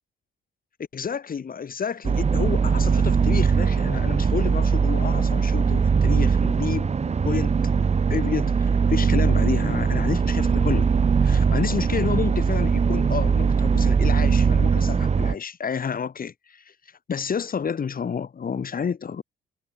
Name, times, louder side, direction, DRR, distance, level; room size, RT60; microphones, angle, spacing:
voice 1, 0.9-6.9 7.2-7.6 8.1-10.9 11.2-16.7 17.1-19.2, left 6 dB, 45° left, 7.6 m, -30 dB
sound 1, 2.0-15.3, right 5 dB, 35° right, 1.6 m, -21 dB
cardioid pair, 90°, 20 cm